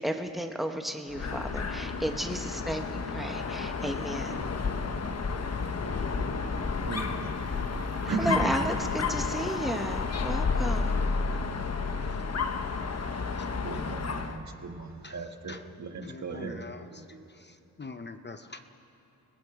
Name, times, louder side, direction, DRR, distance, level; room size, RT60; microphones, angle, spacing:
voice 1, 0.0-4.4 8.0-11.0, right 1 dB, ahead, 4 dB, 1.3 m, -33 dB
Dog, 1.1-14.4, left 4 dB, 45° left, 1.2 m, -31 dB
voice 2, 6.8-7.3 8.1-8.5 13.1-16.6 16.9-17.2, right 4 dB, 55° right, 4 dB, 1.7 m, -36 dB
voice 3, 16.0-16.8 17.8-18.6, left 3 dB, 30° left, 8 dB, 0.8 m, -42 dB
29.5 x 20.0 x 5.0 m, 3.0 s
wide cardioid pair, 110°, 34 cm